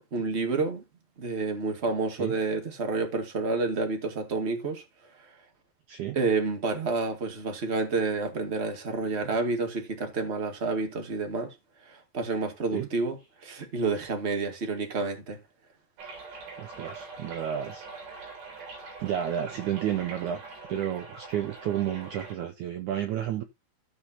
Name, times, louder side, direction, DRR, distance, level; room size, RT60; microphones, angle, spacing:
voice 1, 0.1-0.8 1.2-4.8 6.1-11.5 11.8-15.4, right 3 dB, 40° right, 0.9 m, -29 dB
sound 1, 16.0-22.3, right 4 dB, 65° right, 5.7 m, -43 dB
voice 2, 16.6-17.9 19.0-20.4 20.7-23.4, right 10 dB, 85° right, 1.7 m, -31 dB
15.5 x 6.2 x 2.8 m
omnidirectional pair, 4.8 m